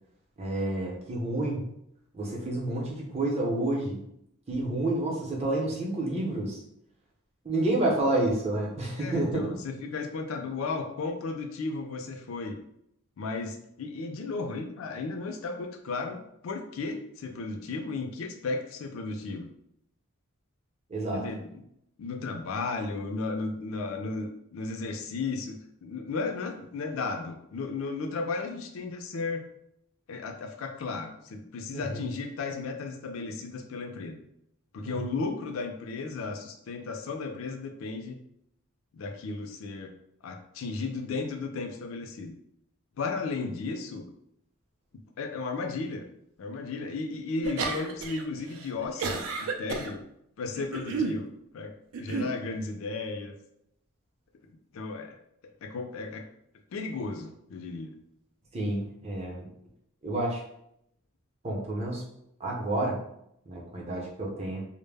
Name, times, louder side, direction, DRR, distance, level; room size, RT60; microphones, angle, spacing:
voice 1, 0.4-1.7 2.1-4.0 4.5-6.6 7.4-9.5 20.9-21.2 31.7-32.0 34.8-35.1 58.5-59.5 60.0-60.4 61.4-62.0 62.4-63.0 63.5-64.6, right 1 dB, 30° right, -2 dB, 0.6 m, -29 dB
voice 2, 9.0-12.6 13.2-19.5 21.1-21.6 22.0-29.4 30.1-34.2 34.7-38.2 38.9-39.9 40.2-42.3 43.0-44.0 45.2-46.0 46.4-50.0 50.4-51.7 52.0-53.3 54.7-55.2 55.6-56.2 56.7-57.9, left 3 dB, 70° left, 4 dB, 0.4 m, -34 dB
sound 1, 47.4-48.2 48.5-49.9 50.5-51.2 51.9-52.3, right 4 dB, 80° right, 0.4 m, -31 dB
2.0 x 2.0 x 3.2 m, 0.75 s
head